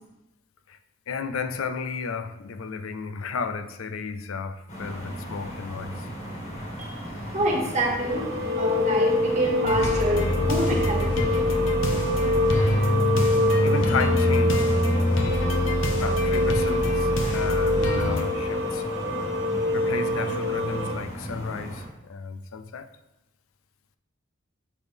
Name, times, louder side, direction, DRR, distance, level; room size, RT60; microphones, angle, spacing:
voice 1, 1.1-6.1 12.0-12.1 12.4-12.8 13.4-15.0 16.0-18.9 19.7-22.9, left 5 dB, 90° left, 0.5 m, -33 dB
sound 1, 4.7-21.8, equal, 35° left, 1.8 m, -36 dB
voice 2, 7.3-8.3 8.6-11.3, right 1 dB, 35° right, 1.6 m, -26 dB
sound 2, 8.1-21.0, left 2 dB, 70° right, 1.3 m, -26 dB
sound 3, 9.6-18.2, left 1 dB, 65° left, 0.9 m, -25 dB
8.2 x 6.0 x 3.5 m
head